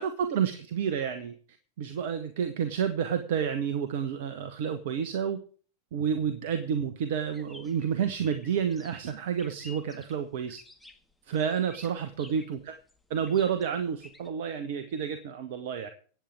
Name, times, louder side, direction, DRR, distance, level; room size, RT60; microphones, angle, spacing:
voice 1, 0.0-1.3 1.8-5.4 5.9-10.6 11.3-12.8 13.1-15.9, right 7 dB, 50° right, 10 dB, 1.2 m, -30 dB
sound 1, 7.3-14.3, left 2 dB, ahead, 1.8 m, -53 dB
25.0 x 8.7 x 3.6 m, 0.43 s
figure-of-eight pair, 90°, 0 cm